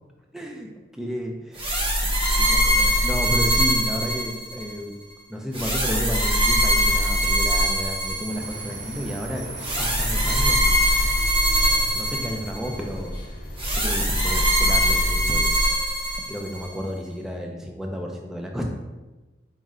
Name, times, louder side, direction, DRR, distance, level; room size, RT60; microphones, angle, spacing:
voice 1, 0.3-5.0 5.3-9.5 9.8-11.3 11.9-13.4 13.7-18.6, equal, ahead, 0 dB, 0.3 m, -32 dB
sound 1, 1.6-4.7 5.5-8.6 9.6-12.8 13.6-16.7, equal, 30° right, 0.6 m, -22 dB
sound 2, 7.0-12.2, right 6 dB, 70° right, 0.7 m, -39 dB
sound 3, 8.3-14.0, left 1 dB, 50° left, 0.6 m, -37 dB
4.6 x 2.1 x 3.6 m, 1.1 s
head